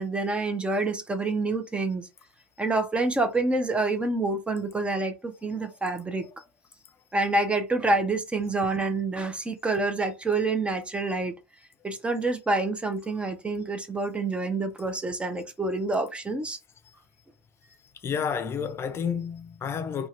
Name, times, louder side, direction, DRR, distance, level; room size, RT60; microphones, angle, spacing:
voice 1, 0.0-2.1 2.6-6.3 7.1-11.3 11.8-16.6, right 3 dB, 15° right, 0.7 m, -27 dB
voice 2, 18.0-20.1, left 7 dB, 35° left, 0.6 m, -30 dB
2.7 x 2.4 x 3.1 m
hypercardioid pair, 85°, 8 cm